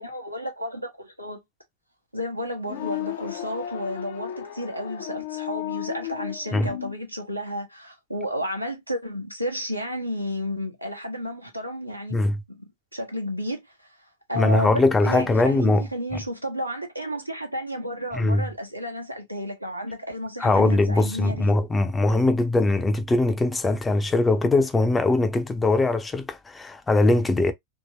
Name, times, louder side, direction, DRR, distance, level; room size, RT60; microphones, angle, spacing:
voice 1, 0.0-1.4 2.1-12.2 12.5-12.6 12.9-13.9 14.3-21.5, equal, 90° right, 0.9 m, -32 dB
Angry Elephant, 2.6-7.0, left 13 dB, 60° left, 0.5 m, -34 dB
voice 2, 14.4-15.9 18.1-18.4 20.4-27.5, left 2 dB, 15° left, 0.5 m, -21 dB
2.9 x 2.9 x 2.5 m
figure-of-eight pair, 90°, 0 cm